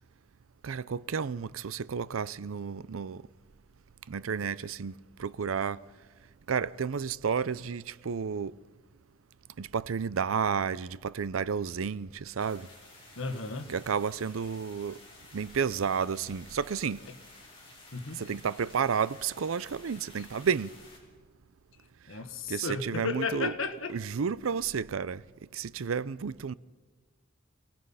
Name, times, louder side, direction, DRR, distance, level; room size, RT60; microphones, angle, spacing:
voice 1, 0.6-3.2 4.1-4.9 5.2-5.8 6.5-8.6 9.6-12.7 13.7-15.0 15.3-17.0 18.2-20.7 22.5-23.5 23.9-25.2 25.5-26.5, right 6 dB, 90° right, 0.5 m, -31 dB
sound 1, 12.4-21.0, left 2 dB, 25° left, 5.5 m, -53 dB
voice 2, 13.2-13.8 17.1-17.2 17.9-18.2 22.1-23.9, left 4 dB, 80° left, 1.6 m, -34 dB
27.5 x 18.5 x 5.6 m
head